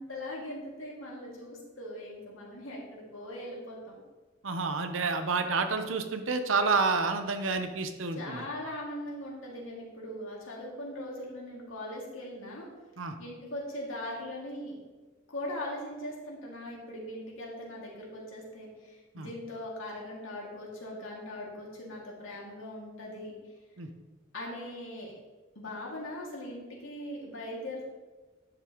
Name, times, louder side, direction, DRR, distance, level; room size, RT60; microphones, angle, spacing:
voice 1, 0.0-4.0 8.2-12.7 13.2-14.7 15.3-23.3 24.3-25.1 25.6-27.9, left 1 dB, 90° left, -3 dB, 2.3 m, -40 dB
voice 2, 4.4-8.5 13.0-13.2 19.1-19.3 23.8-23.9, right 4 dB, 85° right, 7 dB, 0.8 m, -29 dB
10.5 x 6.8 x 3.0 m, 1.2 s
head